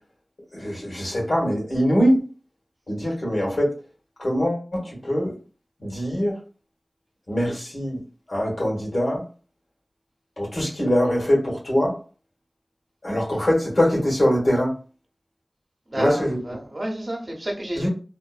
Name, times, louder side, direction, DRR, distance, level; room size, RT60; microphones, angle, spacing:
voice 1, 0.5-2.2 2.9-3.7 4.2-5.3 5.8-6.3 7.3-8.0 8.3-9.2 10.4-12.0 13.0-14.7 16.0-16.4 17.8-17.9, equal, 70° left, -4 dB, 1.4 m, -22 dB
voice 2, 15.9-17.9, right 1 dB, 50° right, 0 dB, 0.7 m, -30 dB
2.9 x 2.0 x 2.4 m, 0.36 s
wide cardioid pair, 40°, 0 cm